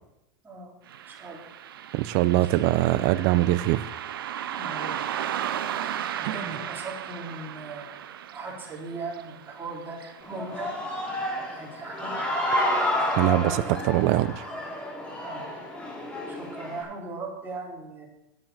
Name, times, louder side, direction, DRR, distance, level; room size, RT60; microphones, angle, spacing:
Car passing by, 0.9-11.7 12.0-12.1 13.0-13.2 13.7-13.8 14.3-14.4, right 10 dB, 85° right, 0.7 m, -36 dB
voice 1, 1.1-1.4 2.3-2.6 4.3-5.0 6.2-7.9 8.3-10.8 11.5-12.1 15.2-15.4 16.3-18.1, right 3 dB, 15° right, -1 dB, 3.4 m, -39 dB
voice 2, 1.9-3.8 6.2-6.6 13.2-14.3, right 16 dB, 55° right, 16 dB, 0.6 m, -23 dB
Human voice / Cheering, 10.2-16.8, left 1 dB, 10° left, 3.6 m, -30 dB
8.9 x 7.6 x 7.5 m, 0.90 s
supercardioid pair, 120°, 12 cm